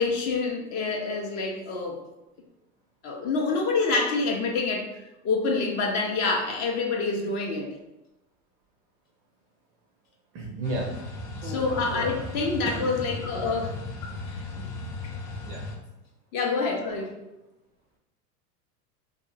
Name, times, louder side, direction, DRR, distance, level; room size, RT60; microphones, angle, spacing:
voice 1, 0.0-2.0 3.0-7.7 11.4-13.8 14.3-14.7 16.3-17.2, left 4 dB, 35° left, 1 dB, 0.5 m, -27 dB
voice 2, 10.3-10.9 11.4-11.6 11.9-12.2 12.6-12.9 15.4-15.7, right 2 dB, 30° right, -1 dB, 0.4 m, -33 dB
sound 1, 10.6-15.7, left 2 dB, 75° left, 0.8 m, -36 dB
2.6 x 2.4 x 2.5 m, 0.94 s
hypercardioid pair, 95°, 48 cm